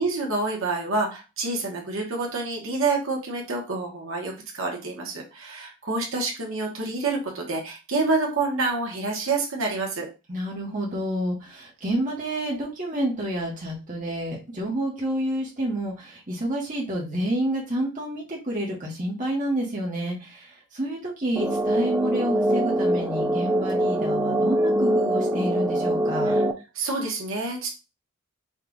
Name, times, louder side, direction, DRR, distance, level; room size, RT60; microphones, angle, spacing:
voice 1, 0.0-10.1 26.3-26.4 26.7-27.7, right 3 dB, 70° right, -1 dB, 1.3 m, -27 dB
voice 2, 10.3-26.3, right 1 dB, 35° right, -4 dB, 1.3 m, -29 dB
sound 1, 21.4-26.5, right 1 dB, 10° right, 0.4 m, -23 dB
5.3 x 2.5 x 3.8 m, 0.29 s
head